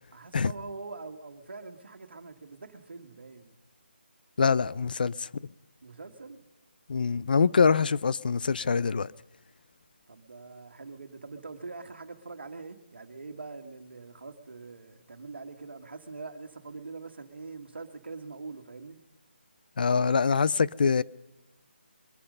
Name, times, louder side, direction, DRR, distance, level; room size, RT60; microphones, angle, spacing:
voice 1, 0.1-3.5 5.8-6.4 10.1-19.0, right 3 dB, 70° right, 1.7 m, -43 dB
voice 2, 4.4-5.3 6.9-9.1 19.8-21.0, left 5 dB, 50° left, 0.4 m, -24 dB
22.5 x 8.7 x 5.4 m
figure-of-eight pair, 165°, 6 cm